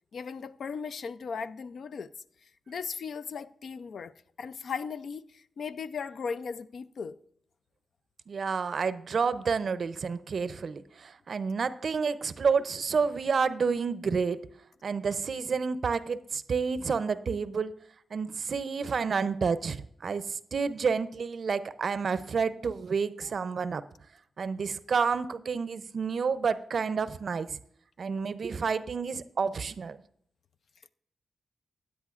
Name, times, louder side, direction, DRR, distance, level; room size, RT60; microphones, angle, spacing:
voice 1, 0.1-2.1 2.7-4.1 4.4-7.2, left 5 dB, 70° left, 0.4 m, -37 dB
voice 2, 8.3-14.4 14.8-17.7 18.1-23.8 24.4-27.6 28.0-30.0, right 5 dB, 65° right, 0.5 m, -29 dB
15.5 x 9.6 x 2.4 m
supercardioid pair, 45°, 0 cm